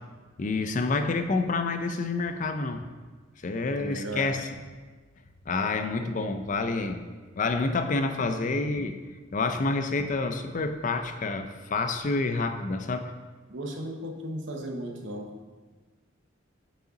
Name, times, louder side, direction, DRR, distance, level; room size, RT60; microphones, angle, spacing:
voice 1, 0.4-2.8 3.4-4.5 5.5-7.0 7.4-9.0 9.3-13.1, left 3 dB, 40° left, 7 dB, 0.5 m, -28 dB
voice 2, 3.7-4.3 13.5-15.4, right 1 dB, 65° right, 3 dB, 0.9 m, -36 dB
8.0 x 5.3 x 3.8 m, 1.4 s
head